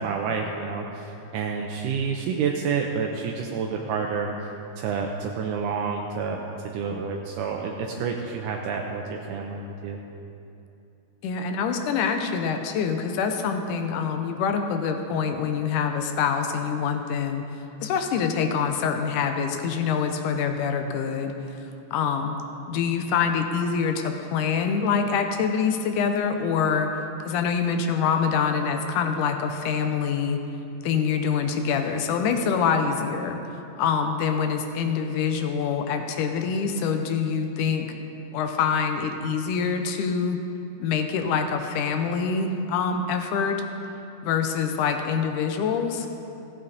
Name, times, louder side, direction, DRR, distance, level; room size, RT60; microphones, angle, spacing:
voice 1, 0.0-4.3 4.8-6.4 6.6-10.0, right 5 dB, 80° right, 1 dB, 2.1 m, -29 dB
voice 2, 11.2-17.4 17.8-21.6 21.9-22.4 22.7-26.9 27.3-30.4 30.8-33.4 33.8-37.9 38.3-40.4 40.8-43.6 44.2-46.1, left 6 dB, 80° left, 5 dB, 2.1 m, -25 dB
15.5 x 8.7 x 4.0 m, 2.8 s
omnidirectional pair, 3.8 m